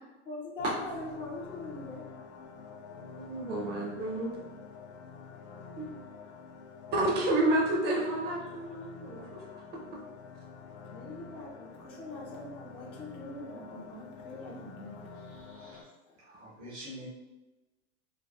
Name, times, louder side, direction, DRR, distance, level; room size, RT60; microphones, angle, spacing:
voice 1, 0.3-2.0 10.9-15.0 16.1-16.2, left 2 dB, 15° left, -4 dB, 0.4 m, -42 dB
sound 1, 0.6-15.8, left 5 dB, 70° left, 0.5 m, -48 dB
voice 2, 3.0-4.3 6.9-9.4, right 1 dB, 30° right, -2 dB, 0.6 m, -30 dB
voice 3, 15.3-15.8 16.3-17.1, equal, 80° right, -8 dB, 1.0 m, -46 dB
3.3 x 2.3 x 2.3 m, 1.1 s
hypercardioid pair, 105°, 35 cm